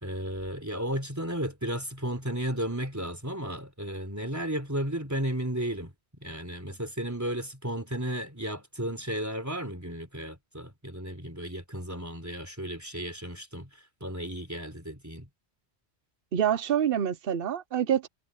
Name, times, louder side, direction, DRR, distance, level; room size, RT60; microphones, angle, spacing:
voice 1, 0.0-13.7 14.0-15.3, right 1 dB, 15° right, 3.8 m, -34 dB
voice 2, 16.3-18.1, right 9 dB, 60° right, 1.0 m, -26 dB
omnidirectional pair, 1.1 m